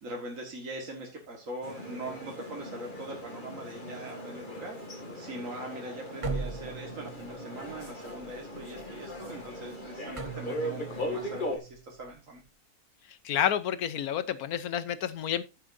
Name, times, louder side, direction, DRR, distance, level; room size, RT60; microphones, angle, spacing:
voice 1, 0.0-4.8 5.1-12.4, right 1 dB, 55° right, 2.1 m, -42 dB
sound 1, 1.6-11.6, equal, 30° left, 2.5 m, -39 dB
sound 2, 6.2-12.5, right 4 dB, 35° right, 0.5 m, -40 dB
voice 2, 13.2-15.4, left 10 dB, 70° left, 1.3 m, -29 dB
14.0 x 7.4 x 2.7 m
omnidirectional pair, 1.6 m